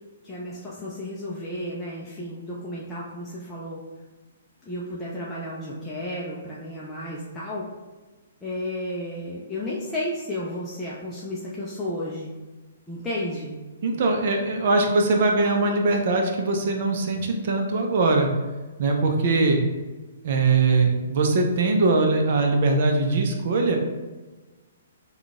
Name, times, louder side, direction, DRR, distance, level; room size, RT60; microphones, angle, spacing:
voice 1, 0.2-3.8 4.6-7.7 8.4-12.3 12.9-13.5, left 1 dB, 10° left, -8 dB, 0.5 m, -32 dB
voice 2, 13.8-18.3 18.8-19.6 20.2-23.8, right 3 dB, 55° right, 2 dB, 0.6 m, -21 dB
3.7 x 2.3 x 3.6 m, 1.2 s
hypercardioid pair, 145°, 0 cm